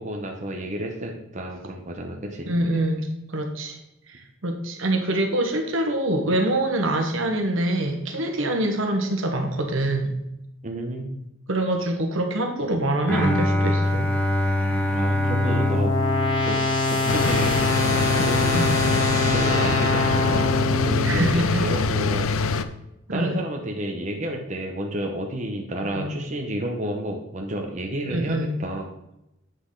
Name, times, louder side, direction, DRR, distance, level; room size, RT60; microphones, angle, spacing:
voice 1, 0.0-2.5 10.6-11.3 14.9-15.9 16.4-16.6 16.9-17.7 18.1-18.6 19.3-22.3 23.1-28.9, right 1 dB, 35° right, 1 dB, 0.9 m, -31 dB
voice 2, 2.5-3.8 4.1-10.2 11.5-14.1 18.5-18.8 21.0-21.6 23.1-23.4 26.0-26.1 28.1-28.6, right 1 dB, 75° right, 3 dB, 1.3 m, -25 dB
Bowed string instrument, 13.1-17.2, left 1 dB, 10° left, 0.9 m, -24 dB
sound 1, 14.4-21.5, left 2 dB, 60° left, 2.8 m, -24 dB
sound 2, 17.1-22.6, left 4 dB, 85° left, 0.5 m, -24 dB
8.2 x 6.1 x 3.9 m, 0.85 s
head